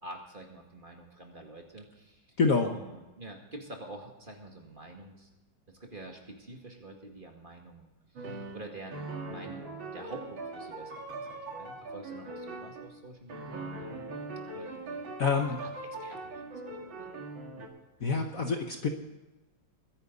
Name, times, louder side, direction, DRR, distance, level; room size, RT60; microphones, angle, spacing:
voice 1, 0.0-2.4 2.6-5.3 5.7-14.2 14.5-15.0 15.5-15.7 16.0-17.1 18.0-18.4, right 2 dB, 25° right, 1 dB, 2.2 m, -47 dB
voice 2, 2.4-2.7 15.2-15.6 18.0-18.9, left 4 dB, 50° left, 4 dB, 1.3 m, -27 dB
sound 1, 8.2-12.9 13.3-17.7, right 2 dB, 75° right, 2.7 m, -41 dB
22.5 x 10.0 x 4.0 m, 1.1 s
omnidirectional pair, 2.2 m